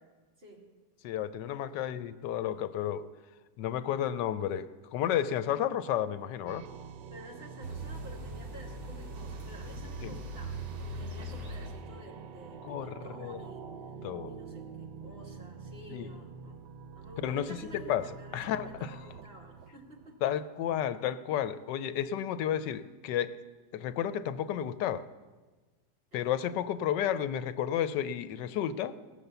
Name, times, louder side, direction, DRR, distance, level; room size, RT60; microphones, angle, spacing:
voice 1, 1.0-3.1 3.6-6.6 10.0-10.2 12.6-13.4 14.0-14.4 15.9-16.1 17.2-18.1 18.3-19.0 20.2-23.4 23.7-25.1 26.1-29.0, left 10 dB, 85° left, 13 dB, 1.2 m, -32 dB
sound 1, 6.5-20.6, right 6 dB, 90° right, 1.3 m, -47 dB
voice 2, 7.1-13.7 14.3-16.6 16.9-20.3 26.1-26.5, equal, 35° right, -2 dB, 2.4 m, -51 dB
sound 2, 7.6-11.9, right 1 dB, 60° right, 3.2 m, -41 dB
18.5 x 6.9 x 6.8 m, 1.3 s
omnidirectional pair, 1.9 m